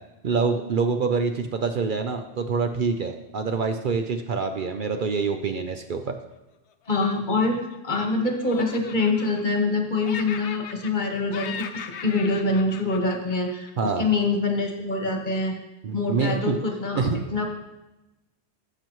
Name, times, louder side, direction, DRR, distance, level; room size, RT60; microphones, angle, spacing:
voice 1, 0.2-6.1 13.8-14.0 15.8-16.6 16.9-17.2, right 5 dB, 55° right, 6 dB, 0.7 m, -26 dB
Laughter, 6.9-8.1 8.4-9.8 10.0-11.1 11.3-13.9, left 7 dB, 90° left, 0.9 m, -39 dB
voice 2, 6.9-11.7 12.0-15.5 15.9-17.0 17.3-17.4, left 3 dB, 45° left, 2 dB, 1.3 m, -25 dB
13.0 x 6.8 x 3.1 m, 1.0 s
omnidirectional pair, 1.1 m